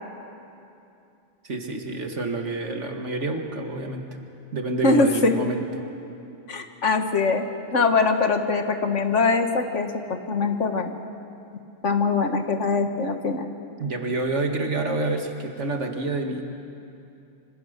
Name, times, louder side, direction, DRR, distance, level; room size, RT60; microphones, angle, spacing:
voice 1, 1.4-4.0 4.5-5.6 13.8-16.4, right 2 dB, 60° right, 4 dB, 2.2 m, -28 dB
voice 2, 4.8-5.3 6.5-7.5 7.7-9.9 10.3-10.9 11.8-13.5, left 4 dB, 65° left, 6 dB, 1.8 m, -22 dB
26.5 x 25.0 x 6.7 m, 2.7 s
omnidirectional pair, 1.4 m